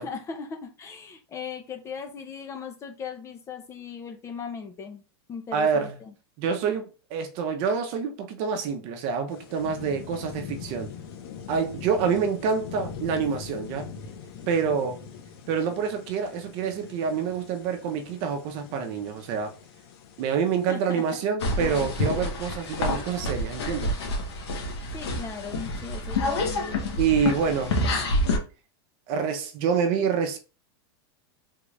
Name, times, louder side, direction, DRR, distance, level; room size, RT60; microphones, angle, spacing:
voice 1, 0.0-5.0 5.3-6.1 20.7-21.2 24.9-27.0, left 6 dB, 20° left, 0.6 m, -38 dB
voice 2, 5.5-6.0 6.4-10.9 11.5-13.9 14.5-15.0 15.5-19.6 20.2-24.0 27.0-27.8 29.1-30.4, right 6 dB, 45° right, 0.8 m, -27 dB
sound 1, 9.3-21.2, left 6 dB, 65° left, 0.9 m, -42 dB
sound 2, 21.4-28.4, left 1 dB, 85° left, 1.3 m, -28 dB
3.6 x 2.5 x 3.2 m
supercardioid pair, 140°, 14 cm